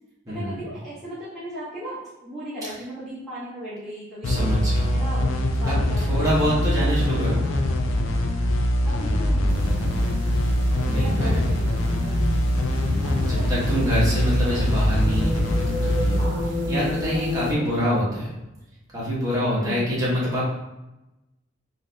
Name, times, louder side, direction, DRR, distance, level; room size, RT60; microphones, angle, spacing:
voice 1, 0.3-4.5 4.9-5.3 5.6-6.2 6.5-7.1 8.8-10.1 10.9-12.2 13.0-14.0 16.2-16.6 17.1-17.8 19.6-20.0, equal, ahead, -12 dB, 0.9 m, -36 dB
sound 1, 4.2-17.5, left 1 dB, 90° left, 0.5 m, -23 dB
voice 2, 4.2-5.0 5.7-7.4 10.8-11.4 12.8-16.2 16.7-18.3 18.9-20.5, equal, 20° right, -8 dB, 1.2 m, -26 dB
sound 2, 9.5-17.5, left 1 dB, 60° right, 0.5 m, -31 dB
3.9 x 3.1 x 2.7 m, 0.97 s
head